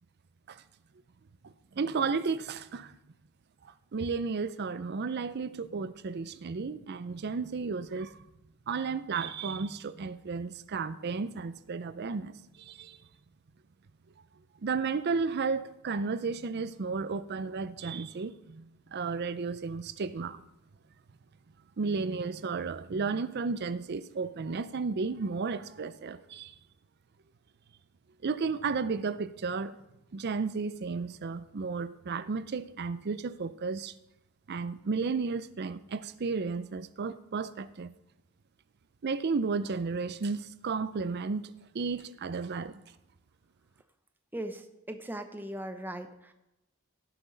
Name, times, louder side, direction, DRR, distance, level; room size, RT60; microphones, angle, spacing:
voice 1, 1.4-2.9 3.6-8.2 8.7-13.0 14.6-20.4 21.8-26.6 28.2-29.8 30.1-33.9 34.5-37.9 39.0-42.8, right 4 dB, 50° right, 0.5 m, -33 dB
voice 2, 44.3-46.3, right 1 dB, 10° right, 0.7 m, -39 dB
16.5 x 6.0 x 3.9 m
head